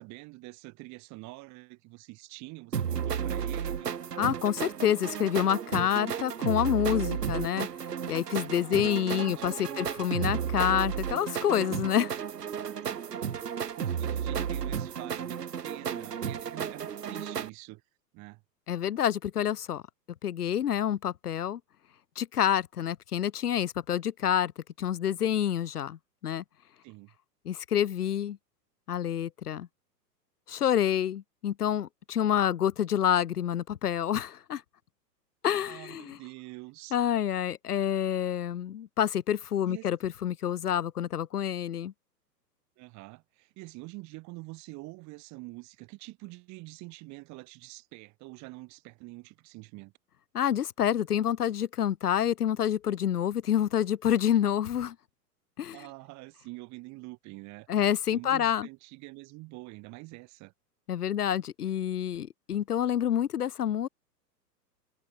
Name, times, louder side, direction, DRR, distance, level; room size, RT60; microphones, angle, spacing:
voice 1, 0.0-3.9 8.6-9.8 12.6-13.4 13.7-17.8 18.1-18.4 26.8-27.1 35.7-37.0 39.7-39.9 42.8-49.9 55.7-57.7 58.1-60.5, right 23 dB, 35° right, 5.1 m, -46 dB
sound 1, 2.7-17.5, right 8 dB, 70° right, 3.3 m, -33 dB
voice 2, 4.2-7.7 8.1-12.1 18.7-19.8 20.2-21.6 22.2-24.5 24.8-26.4 27.4-28.4 28.9-29.7 30.5-34.6 35.4-36.2 36.9-41.9 50.3-54.9 55.6-55.8 57.7-58.7 60.9-63.9, left 10 dB, 65° left, 1.5 m, -28 dB
figure-of-eight pair, 105°, 50 cm